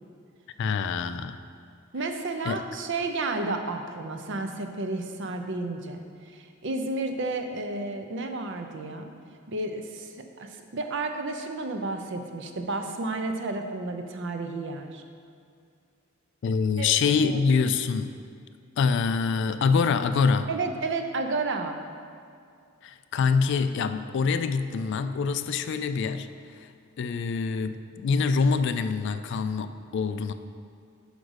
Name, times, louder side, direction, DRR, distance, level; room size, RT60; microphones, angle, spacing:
voice 1, 0.6-1.4 2.4-2.6 16.4-18.2 18.8-20.5 22.8-26.7 27.0-30.3, left 5 dB, 60° left, 10 dB, 0.3 m, -25 dB
voice 2, 1.9-9.1 9.5-10.1 10.4-15.0 16.8-16.9 17.2-17.4 20.5-21.8, right 3 dB, 60° right, 5 dB, 0.6 m, -31 dB
5.2 x 5.0 x 6.3 m, 2.3 s
head